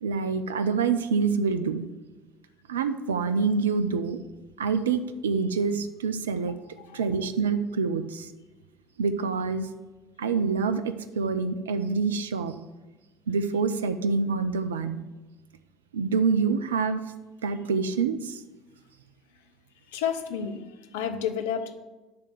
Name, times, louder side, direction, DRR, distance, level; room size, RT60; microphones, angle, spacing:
voice 1, 0.0-1.8 2.7-4.2 4.6-6.6 6.9-8.3 9.0-9.7 10.2-12.5 13.3-15.0 15.9-17.0 17.4-18.4, right 5 dB, 80° right, 10 dB, 0.4 m, -26 dB
voice 2, 19.9-21.7, left 8 dB, 70° left, 8 dB, 0.7 m, -31 dB
9.4 x 3.4 x 6.5 m, 1.2 s
figure-of-eight pair, 60°, 0 cm